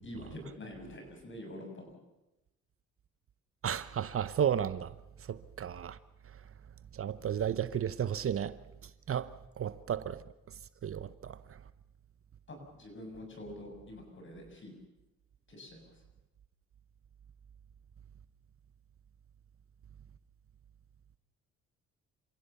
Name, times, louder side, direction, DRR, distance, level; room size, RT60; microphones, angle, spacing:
voice 1, 0.0-2.0 12.5-14.7 15.5-15.9, left 1 dB, 40° left, 7.2 m, -46 dB
voice 2, 3.6-4.9 5.3-6.0 6.9-8.6 9.1-9.3 9.6-10.2 10.8-11.4, right 9 dB, 50° right, 0.9 m, -33 dB
27.5 x 16.0 x 7.0 m
cardioid pair, 90°, 30 cm